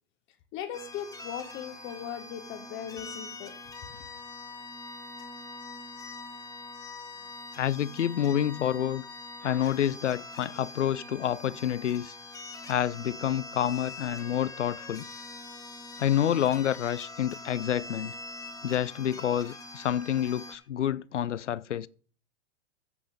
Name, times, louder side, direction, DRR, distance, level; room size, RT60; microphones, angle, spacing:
voice 1, 0.5-3.5, left 9 dB, 35° left, 1.1 m, -38 dB
sound 1, 0.7-20.6, left 3 dB, 10° left, 1.7 m, -43 dB
voice 2, 7.5-9.0 9.4-12.1 12.7-15.0 16.0-18.1 18.6-21.9, left 10 dB, 85° left, 0.5 m, -28 dB
14.5 x 5.5 x 5.0 m
hypercardioid pair, 105°, 35 cm